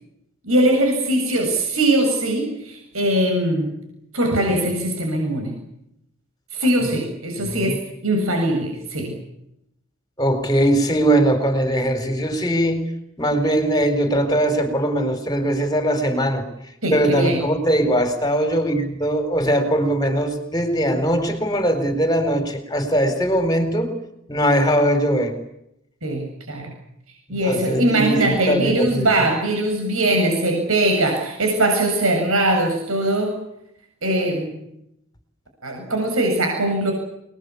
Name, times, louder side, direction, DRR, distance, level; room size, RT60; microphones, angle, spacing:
voice 1, 0.4-3.7 4.1-5.5 6.5-9.1 16.8-17.4 26.0-26.7 27.3-33.3 34.0-34.5 35.6-36.9, right 1 dB, 75° right, 2 dB, 7.7 m, -21 dB
voice 2, 7.4-7.7 10.2-12.8 13.2-16.4 16.9-23.9 24.3-25.4 27.3-29.1, right 1 dB, 20° left, 9 dB, 4.6 m, -20 dB
28.5 x 21.5 x 8.6 m, 0.81 s
head